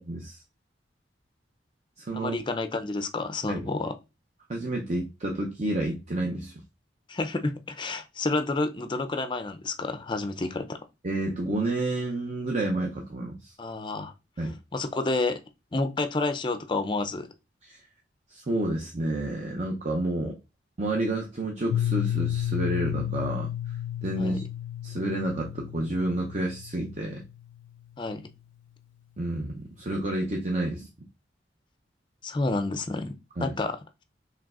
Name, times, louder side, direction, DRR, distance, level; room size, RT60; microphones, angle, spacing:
voice 1, 0.1-0.4 2.0-2.4 3.5-3.7 4.5-6.5 11.0-13.5 14.4-14.5 17.6-17.8 18.3-20.4 20.8-23.5 24.0-24.4 24.8-27.2 29.2-30.9 33.4-33.5, right 1 dB, 40° right, 0.6 m, -30 dB
voice 2, 2.1-4.0 7.1-10.8 13.6-14.1 14.7-15.4 15.7-17.3 24.2-24.4 28.0-28.2 32.2-34.0, left 2 dB, 25° left, 0.4 m, -29 dB
Piano, 21.7-27.3, left 11 dB, 90° left, 0.3 m, -32 dB
4.9 x 3.2 x 2.4 m
head